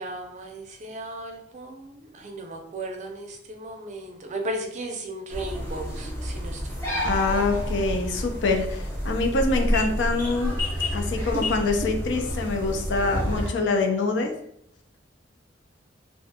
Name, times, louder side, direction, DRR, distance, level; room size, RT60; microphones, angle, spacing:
voice 1, 0.0-7.2, right 1 dB, 40° right, 3 dB, 0.4 m, -36 dB
sound 1, 5.3-13.5, equal, 15° left, 0.9 m, -29 dB
voice 2, 7.0-10.5 10.9-14.3, left 3 dB, 75° left, 4 dB, 0.4 m, -25 dB
2.3 x 2.2 x 2.7 m, 0.72 s
head